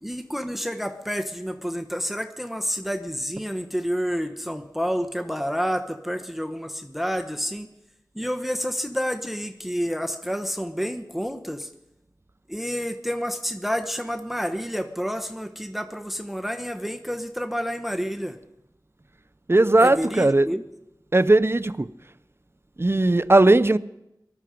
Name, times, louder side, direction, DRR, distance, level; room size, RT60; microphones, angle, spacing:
voice 1, 0.0-7.7 8.1-11.7 12.5-18.4 19.8-20.7, equal, 5° right, 0.9 m, -29 dB
voice 2, 19.5-20.5 21.1-21.9 22.8-23.8, right 2 dB, 35° right, 0.5 m, -18 dB
19.5 x 12.5 x 5.1 m
wide cardioid pair, 45°, 8 cm